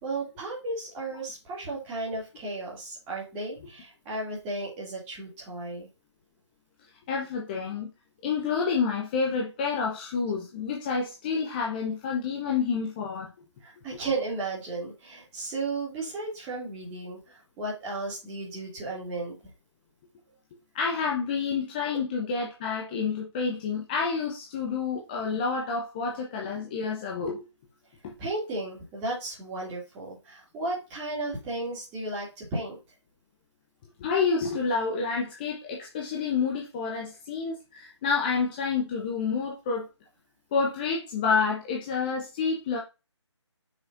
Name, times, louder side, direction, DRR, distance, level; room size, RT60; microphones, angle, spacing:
voice 1, 0.0-5.9 13.6-19.4 28.2-32.8, right 2 dB, 15° right, 2.6 m, -34 dB
voice 2, 7.1-7.9 8.2-13.3 13.9-14.0 20.7-27.5 28.0-28.1 34.0-39.9 40.5-42.8, left 5 dB, 20° left, 0.9 m, -29 dB
8.0 x 6.5 x 2.6 m
figure-of-eight pair, 150°, 15 cm